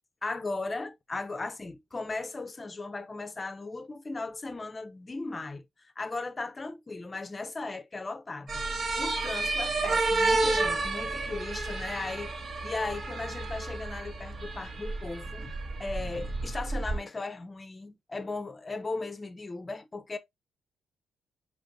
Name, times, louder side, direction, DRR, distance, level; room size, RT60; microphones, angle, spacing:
voice 1, 0.2-5.6 6.0-8.6 9.0-20.2, left 3 dB, 30° left, 0.7 m, -37 dB
sound 1, 8.5-17.0, right 3 dB, 50° right, 1.0 m, -31 dB
5.1 x 3.1 x 2.6 m
hypercardioid pair, 45°, 0 cm